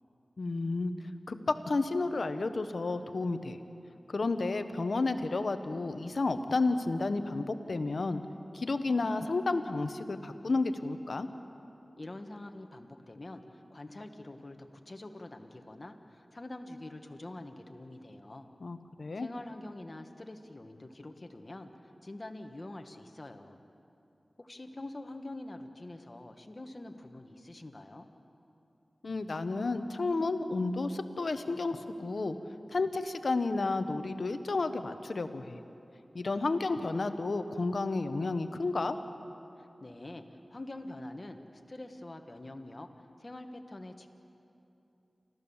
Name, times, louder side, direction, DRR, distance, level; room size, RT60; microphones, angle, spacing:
voice 1, 0.4-0.9 1.3-3.6 4.1-8.2 8.5-11.3 18.6-19.3 29.0-32.4 32.7-35.6 36.1-39.0, left 3 dB, 75° left, 9 dB, 1.0 m, -31 dB
voice 2, 12.0-18.5 19.2-23.6 24.4-28.1 39.6-42.9 43.2-44.1, left 2 dB, 45° left, 5 dB, 1.6 m, -45 dB
29.0 x 14.0 x 7.2 m, 2.9 s
cardioid pair, 45°, 0 cm